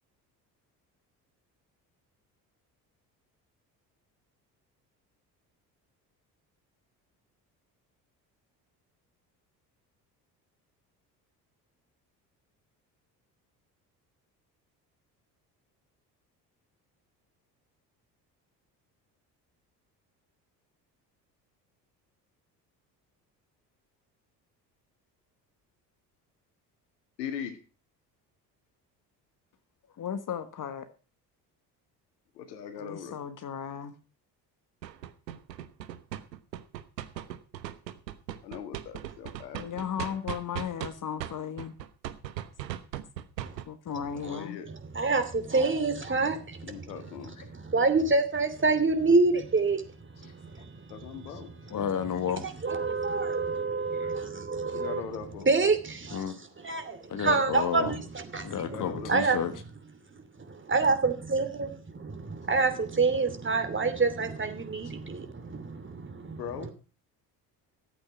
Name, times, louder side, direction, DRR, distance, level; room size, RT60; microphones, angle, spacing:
voice 1, 27.2-27.6 32.4-33.2 38.4-39.9 44.2-44.7 46.6-47.4 50.9-52.0 52.3-52.5 54.6-55.5 58.5-59.1 66.2-66.7, left 8 dB, 75° left, 1.9 m, -40 dB
voice 2, 30.0-30.9 32.8-33.9 39.6-41.7 43.7-44.6 47.4-47.5 50.2-50.3 51.7-52.4 53.9-54.1 56.1-56.4 57.1-58.0 58.4-59.5, left 8 dB, 40° left, 1.4 m, -33 dB
sound 1, 34.8-40.9 41.2-43.6, right 12 dB, 80° right, 1.1 m, -38 dB
voice 3, 44.9-46.7 47.5-49.8 50.2-50.7 52.6-55.0 55.5-56.2 56.6-58.0 58.3-58.8 59.1-59.4 60.4-66.4, right 3 dB, 25° right, 2.8 m, -27 dB
13.5 x 8.6 x 6.0 m
figure-of-eight pair, 55°, 49 cm